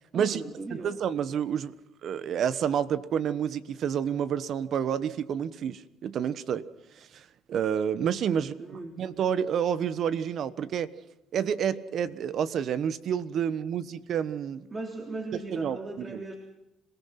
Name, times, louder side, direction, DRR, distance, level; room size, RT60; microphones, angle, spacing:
voice 1, 0.1-0.9 8.3-9.0 14.7-16.4, right 2 dB, 30° right, 2 dB, 3.4 m, -38 dB
voice 2, 0.7-1.8 2.0-6.6 7.0-7.2 7.5-10.9 11.3-14.7 15.5-16.2, right 8 dB, 55° right, 15 dB, 1.2 m, -29 dB
27.0 x 18.0 x 6.0 m, 0.90 s
cardioid pair, 105°, 0 cm